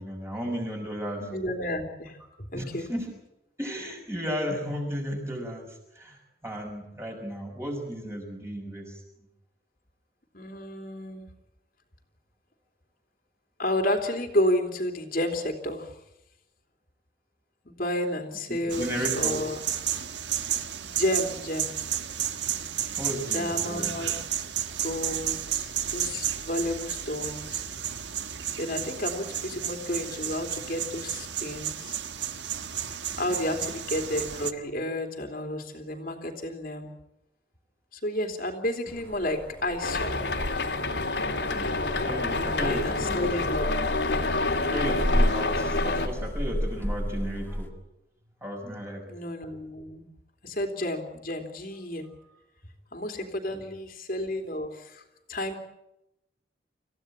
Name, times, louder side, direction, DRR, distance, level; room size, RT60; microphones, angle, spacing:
voice 1, 0.0-1.3 2.5-3.1 3.6-9.0 18.5-19.4 23.0-23.9 32.9-33.4 41.5-43.4 44.7-47.7 48.4-49.0 52.0-52.4 53.2-53.6, equal, 15° right, 1 dB, 6.2 m, -34 dB
voice 2, 1.2-2.9 10.3-11.3 13.6-16.0 17.6-19.6 20.8-21.7 23.3-24.2 24.8-27.6 28.6-32.0 33.2-36.9 37.9-40.2 42.6-43.7 49.1-50.1 50.4-52.1 52.9-55.0 55.3-55.6, left 1 dB, 50° left, 3 dB, 3.0 m, -31 dB
sound 1, 18.7-34.5, right 10 dB, 85° right, 1.4 m, -32 dB
sound 2, 38.9-47.7, equal, 10° left, 1.9 m, -32 dB
sound 3, 39.8-46.1, left 2 dB, 75° left, 3.0 m, -28 dB
27.0 x 16.0 x 8.7 m, 0.88 s
head